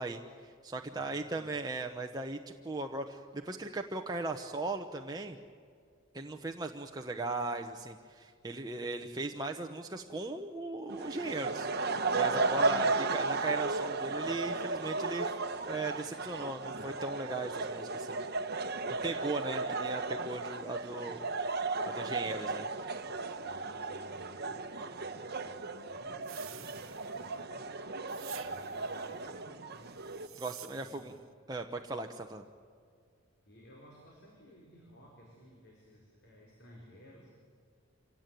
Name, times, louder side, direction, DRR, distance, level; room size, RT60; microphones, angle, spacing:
voice 1, 0.0-5.4 6.1-11.7 12.1-15.3 15.7-18.2 18.9-21.3 21.9-22.7 30.3-31.1 31.5-32.4, right 2 dB, 20° right, 3 dB, 0.9 m, -38 dB
voice 2, 0.9-1.5 12.5-12.7 23.4-27.8 28.3-30.0 30.7-31.2 33.5-37.3, equal, 55° left, -1 dB, 4.8 m, -57 dB
sound 1, 10.9-30.3, right 3 dB, 50° right, 1.1 m, -35 dB
sound 2, 26.2-27.4 28.1-29.0 29.9-31.2, right 13 dB, 80° right, 1.1 m, -50 dB
26.0 x 17.5 x 9.2 m, 2.2 s
head